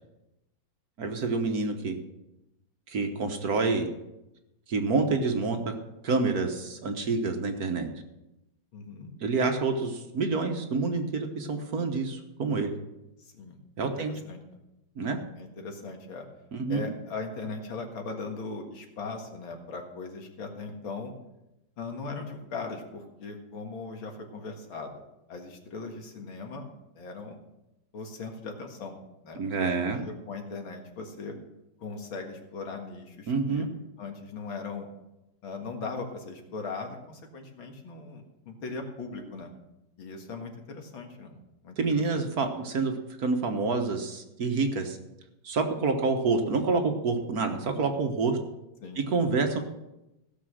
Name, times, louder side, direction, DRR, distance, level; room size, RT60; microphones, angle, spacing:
voice 1, 1.0-2.0 2.9-3.9 4.7-5.7 6.0-7.9 9.2-12.7 13.8-14.1 15.0-15.2 16.5-16.9 29.4-30.0 33.3-33.7 41.8-42.9 43.2-45.0 45.4-48.4 49.0-49.6, right 4 dB, 50° right, 5 dB, 1.5 m, -27 dB
voice 2, 8.7-9.1 13.2-13.6 14.0-14.4 15.4-16.3 16.7-21.1 21.8-25.0 25.3-26.7 27.0-27.4 27.9-31.3 31.8-33.7 34.0-34.9 35.4-39.5 40.0-41.8 42.1-42.3 48.8-49.0, left 4 dB, 75° left, 3 dB, 2.5 m, -39 dB
16.0 x 6.9 x 6.3 m, 0.93 s
omnidirectional pair, 2.2 m